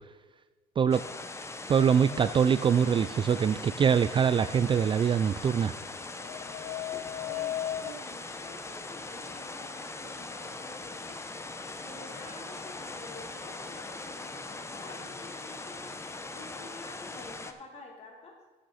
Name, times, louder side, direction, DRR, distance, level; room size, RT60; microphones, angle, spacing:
sound 1, 0.9-17.5, left 3 dB, 15° left, 0.8 m, -41 dB
voice 1, 1.7-5.7, right 7 dB, 30° right, 13 dB, 0.3 m, -24 dB
sound 2, 1.8-2.5 5.8-7.9, left 12 dB, 90° left, 0.5 m, -37 dB
voice 2, 7.8-11.2 11.8-15.9 16.3-18.4, left 2 dB, 40° left, -1 dB, 3.2 m, -48 dB
10.5 x 6.5 x 5.6 m, 1.3 s
cardioid pair, 110°, 17 cm